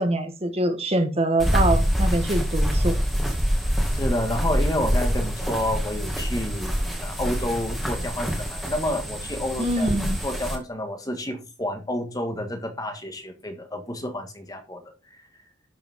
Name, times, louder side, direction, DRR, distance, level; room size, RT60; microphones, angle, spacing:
voice 1, 0.0-3.0 9.6-10.2, right 1 dB, 30° right, 1.4 m, -24 dB
sound 1, 1.4-10.6, equal, ahead, 2.2 m, -25 dB
voice 2, 3.9-6.7 7.0-9.9 10.2-14.8, left 1 dB, 20° left, 1.6 m, -29 dB
11.0 x 7.0 x 3.7 m
head